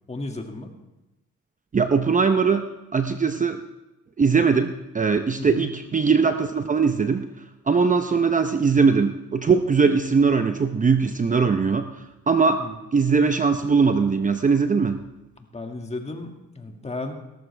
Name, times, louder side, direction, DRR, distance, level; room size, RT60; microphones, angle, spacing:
voice 1, 0.1-0.7 5.4-5.7 12.6-12.7 15.4-17.1, left 2 dB, 20° left, 3 dB, 2.0 m, -34 dB
voice 2, 1.7-3.6 4.2-7.3 7.7-11.9 12.3-12.6 12.9-15.1, right 5 dB, 25° right, 8 dB, 0.7 m, -20 dB
17.5 x 14.0 x 3.4 m, 0.99 s
cardioid pair, 90°, 30 cm